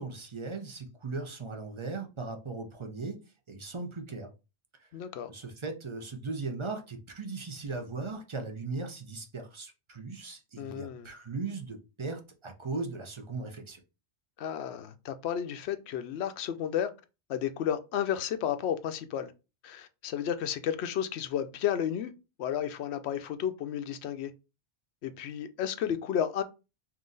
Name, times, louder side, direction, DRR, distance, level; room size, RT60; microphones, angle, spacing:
voice 1, 0.0-3.2 3.5-4.3 4.8-4.9 5.3-13.8, right 3 dB, 30° right, 0.6 m, -38 dB
voice 2, 4.9-5.3 10.6-11.1 14.4-16.9 17.3-19.3 19.6-22.1 22.4-24.3 25.0-26.4, left 9 dB, 75° left, 0.8 m, -32 dB
3.7 x 2.7 x 3.9 m
omnidirectional pair, 1.2 m